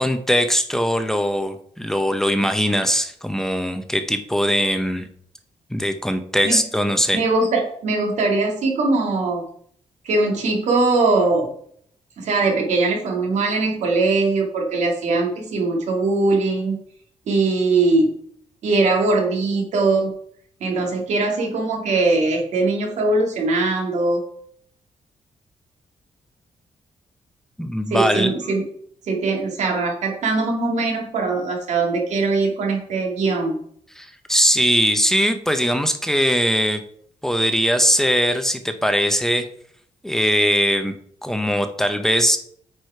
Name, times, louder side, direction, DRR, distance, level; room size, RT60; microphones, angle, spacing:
voice 1, 0.0-5.1 5.7-7.2 27.6-28.3 34.0-36.8 37.2-39.5 40.0-40.9 41.2-42.4, equal, 5° left, 8 dB, 0.6 m, -20 dB
voice 2, 7.1-9.5 10.0-11.5 12.2-16.8 17.3-18.1 18.6-20.1 20.6-24.2 27.9-28.6 29.0-33.6, right 3 dB, 75° right, 1 dB, 2.2 m, -21 dB
8.7 x 4.8 x 4.7 m, 0.63 s
wide cardioid pair, 175°, 12 cm